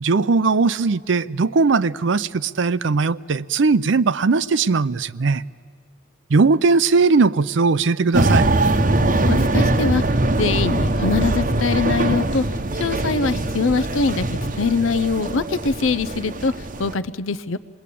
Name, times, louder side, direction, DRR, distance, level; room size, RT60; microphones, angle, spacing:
voice 1, 0.0-5.4 6.3-8.5, right 4 dB, 65° right, 0.5 m, -19 dB
sound 1, 8.1-16.9, right 2 dB, 40° right, 0.9 m, -21 dB
voice 2, 9.3-10.0 10.3-12.4 12.8-14.3 14.6-16.5 16.8-17.6, left 4 dB, 80° left, 0.7 m, -22 dB
28.0 x 20.5 x 8.4 m
head